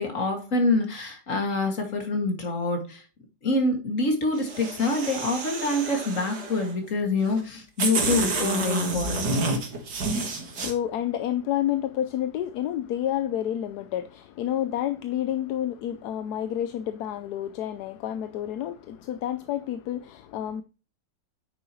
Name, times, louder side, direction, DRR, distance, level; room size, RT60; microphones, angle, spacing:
voice 1, 0.0-3.0 3.4-9.3, left 2 dB, 45° left, 2.5 m, -26 dB
sound 1, 4.4-6.7 7.4-7.5 7.8-10.7, right 3 dB, 65° right, 2.2 m, -29 dB
voice 2, 10.2-20.6, left 11 dB, 70° left, 1.1 m, -29 dB
9.6 x 6.6 x 3.1 m
omnidirectional pair, 1.9 m